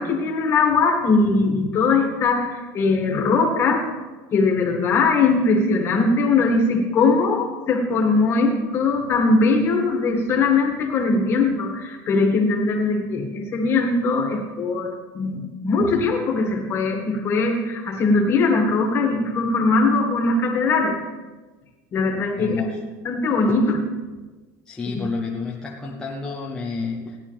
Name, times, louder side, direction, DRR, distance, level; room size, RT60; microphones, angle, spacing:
voice 1, 0.0-3.9 4.3-21.0 21.9-22.8 23.0-23.8 25.0-25.1, left 3 dB, 30° left, 2 dB, 1.9 m, -20 dB
voice 2, 22.4-22.8 23.5-23.6 24.7-27.2, left 4 dB, 10° left, -3 dB, 0.9 m, -30 dB
17.0 x 10.5 x 3.5 m, 1.3 s
cardioid pair, 165°, 9 cm